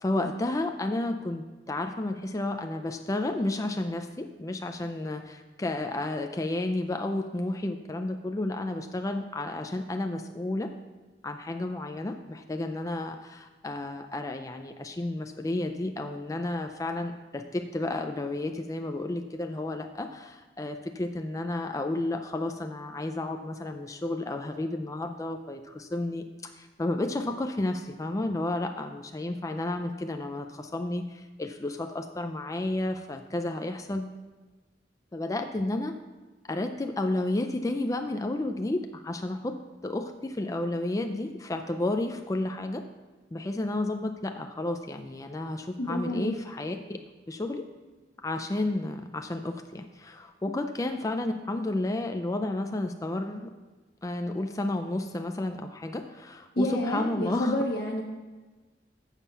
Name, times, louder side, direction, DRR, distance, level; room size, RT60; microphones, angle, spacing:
voice 1, 0.0-10.7 11.2-34.1 35.1-35.9 36.5-39.6 39.8-42.8 43.3-47.0 47.3-47.6 48.2-53.5 54.0-57.5, left 2 dB, 20° left, 5 dB, 0.4 m, -32 dB
voice 2, 45.8-46.3 50.5-50.6 56.5-58.0, left 1 dB, 65° left, -1 dB, 1.2 m, -29 dB
7.3 x 7.1 x 5.4 m, 1.3 s
head